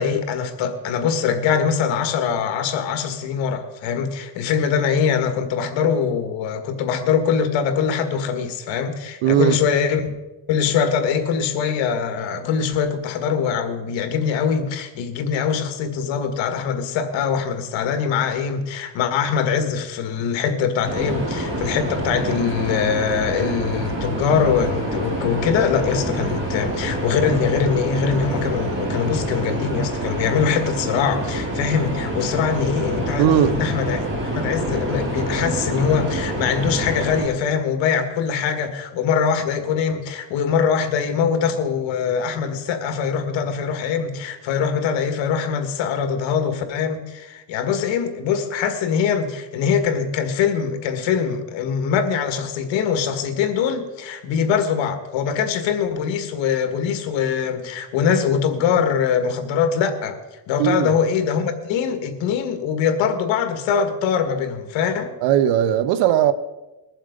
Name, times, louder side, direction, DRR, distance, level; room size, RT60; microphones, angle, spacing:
voice 1, 0.0-10.1 10.5-34.0 34.3-60.2 60.5-65.1, left 7 dB, 80° left, 1.8 m, -22 dB
voice 2, 9.2-9.6 33.2-33.6 60.6-60.9 65.2-66.3, right 10 dB, 85° right, 0.9 m, -18 dB
sound 1, 20.8-37.2, right 1 dB, 25° right, 3.9 m, -27 dB
21.5 x 7.3 x 5.2 m
cardioid pair, 125°, 44 cm